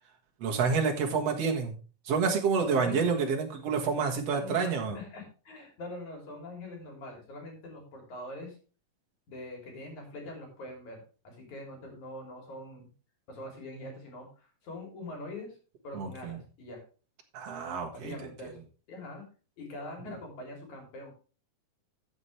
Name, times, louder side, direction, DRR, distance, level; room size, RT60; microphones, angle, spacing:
voice 1, 0.4-1.8 2.1-5.0 15.9-16.4 17.3-18.1, right 5 dB, 55° right, 2 dB, 2.4 m, -28 dB
voice 2, 2.8-3.2 4.4-8.6 9.3-12.9 13.3-15.6 15.8-16.8 17.9-18.6 18.9-19.2 19.6-21.1, left 1 dB, 60° left, 2 dB, 4.5 m, -43 dB
13.5 x 7.2 x 3.3 m, 0.35 s
omnidirectional pair, 3.9 m